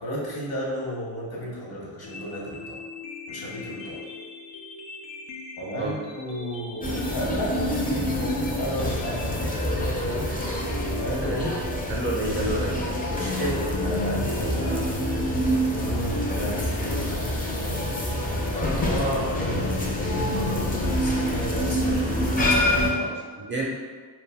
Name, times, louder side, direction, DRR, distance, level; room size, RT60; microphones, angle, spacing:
voice 1, 0.0-2.8 3.3-4.0 5.6-9.7 10.8-11.6 13.1-15.4 15.8-17.3 18.4-23.2, equal, 55° left, -4 dB, 1.0 m, -33 dB
sound 1, 2.0-10.0, left 3 dB, 75° left, 0.5 m, -41 dB
sound 2, 6.8-22.9, left 1 dB, 20° left, 0.5 m, -26 dB
voice 2, 11.2-11.5 11.9-12.8 23.0-23.6, right 2 dB, 25° right, -3 dB, 0.5 m, -30 dB
2.2 x 2.1 x 3.4 m, 1.5 s
cardioid pair, 45°, 45 cm